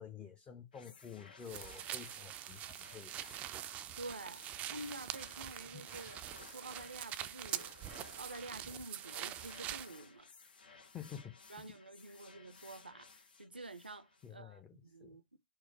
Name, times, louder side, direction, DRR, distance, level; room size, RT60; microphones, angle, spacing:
voice 1, 0.0-3.5 5.7-5.8 10.9-11.4 12.1-12.2 14.2-15.2, left 8 dB, 20° left, 0.6 m, -50 dB
sound 1, 0.7-14.3, left 4 dB, 70° left, 0.8 m, -58 dB
sound 2, 1.5-9.9, right 12 dB, 25° right, 0.3 m, -44 dB
voice 2, 4.0-10.3 11.5-15.4, right 2 dB, 85° right, 0.5 m, -49 dB
4.6 x 2.1 x 4.5 m
figure-of-eight pair, 105°, 5 cm